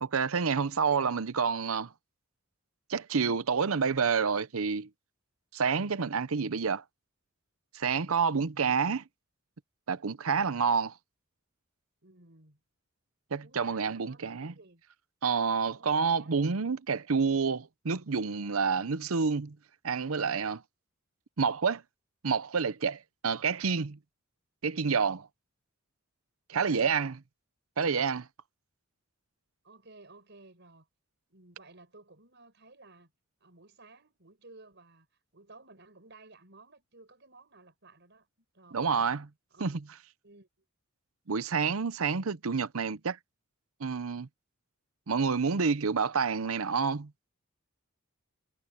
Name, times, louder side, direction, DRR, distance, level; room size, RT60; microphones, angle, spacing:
voice 1, 0.0-1.9 2.9-4.9 5.5-6.8 7.7-9.0 9.9-10.9 13.3-14.5 15.2-19.6 19.8-20.6 21.4-21.8 22.2-24.0 24.6-25.3 26.5-27.1 27.8-28.3 38.7-39.2 39.6-39.8 41.3-43.2 43.8-44.3 45.1-47.1, right 5 dB, 85° right, 0.8 m, -28 dB
voice 2, 12.0-12.6 13.4-14.8 15.4-16.3 26.5-27.0 29.6-30.9 31.3-33.1 33.4-35.1 35.3-39.1 39.5-39.8 40.2-40.5, right 2 dB, 55° right, 5.8 m, -56 dB
head